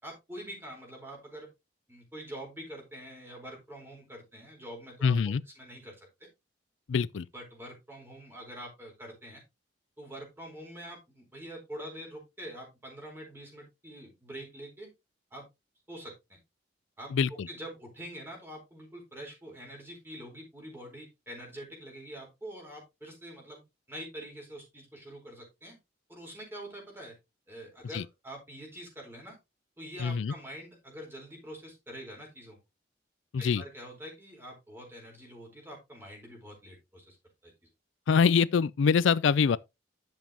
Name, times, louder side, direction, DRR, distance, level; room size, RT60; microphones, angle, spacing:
voice 1, 0.0-1.5 1.9-5.1 5.6-6.3 7.3-9.4 10.0-14.9 15.3-15.4 15.9-16.4 17.0-23.6 23.9-25.8 26.1-27.2 27.5-29.4 29.8-32.6 33.4-37.2 37.4-37.5, right 1 dB, 10° right, 4.4 m, -45 dB
voice 2, 5.0-5.4 6.9-7.3 17.1-17.5 27.9-28.0 30.0-30.3 33.3-33.6 38.1-39.6, left 6 dB, 80° left, 0.4 m, -24 dB
10.5 x 7.3 x 3.0 m
head